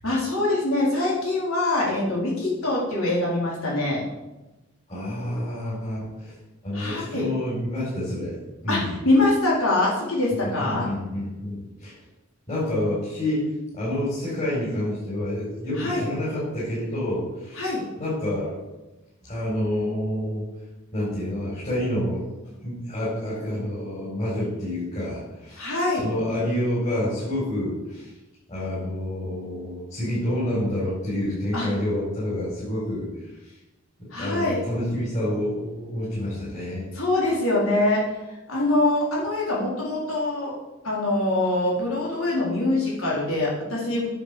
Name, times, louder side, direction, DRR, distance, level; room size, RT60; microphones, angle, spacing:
voice 1, 0.0-4.0 6.7-7.3 8.7-10.9 15.8-16.1 17.5-17.8 25.6-26.1 31.5-31.7 34.1-34.7 36.9-38.0 38.5-40.5 40.8-44.1, left 2 dB, 85° left, -4 dB, 4.5 m, -24 dB
voice 2, 4.9-6.3 6.6-8.3 8.6-8.9 10.4-11.9 12.5-13.5 13.7-17.6 18.0-18.5 19.2-20.4 20.9-22.2 22.6-25.7 26.0-28.1 28.5-33.1 34.2-36.9, left 1 dB, 35° left, -9 dB, 4.9 m, -28 dB
9.9 x 7.2 x 7.1 m, 1.0 s
head